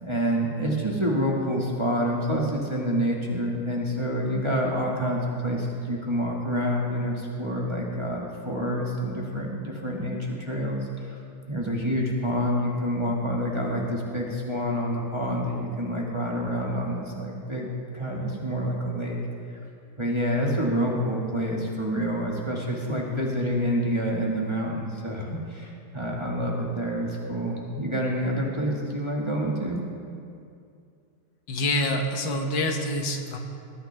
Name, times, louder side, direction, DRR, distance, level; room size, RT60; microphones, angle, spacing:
voice 1, 0.0-11.2 11.5-19.2 19.5-19.6 20.0-29.8, equal, 15° right, -3 dB, 1.5 m, -27 dB
voice 2, 31.5-33.4, left 1 dB, 80° left, 3 dB, 1.8 m, -26 dB
20.0 x 11.5 x 3.4 m, 2.4 s
omnidirectional pair, 2.0 m